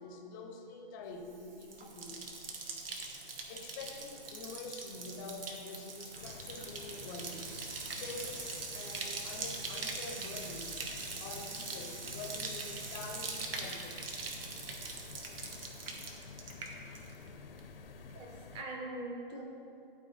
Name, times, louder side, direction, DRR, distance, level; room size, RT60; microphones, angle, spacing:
voice 1, 0.0-2.2 3.5-10.7 11.2-14.3, left 3 dB, 20° left, 3 dB, 0.6 m, -46 dB
Bathtub (filling or washing), 1.2-17.3 17.6-18.1, right 3 dB, 70° right, 1.1 m, -42 dB
sound 1, 6.2-18.6, left 4 dB, 70° left, 0.6 m, -51 dB
voice 2, 18.1-19.4, right 2 dB, 15° right, 0 dB, 0.8 m, -42 dB
12.0 x 4.2 x 3.7 m, 2.5 s
hypercardioid pair, 140°, 30 cm